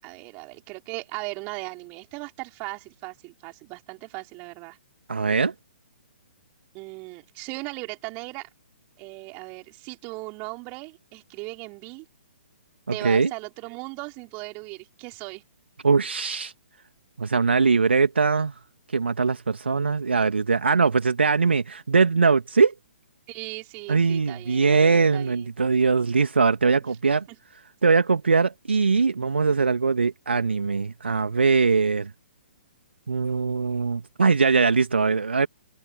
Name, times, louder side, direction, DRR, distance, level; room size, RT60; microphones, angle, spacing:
voice 1, 0.0-4.8 6.7-8.5 9.0-12.1 12.9-15.4 23.3-25.5 27.3-27.4, right 29 dB, 25° right, 5.3 m, -38 dB
voice 2, 5.1-5.5 12.9-13.3 15.8-16.5 17.2-18.5 18.9-22.7 23.9-27.2 27.8-32.1 33.1-35.5, right 4 dB, 70° right, 2.2 m, -21 dB
figure-of-eight pair, 125°, 6 cm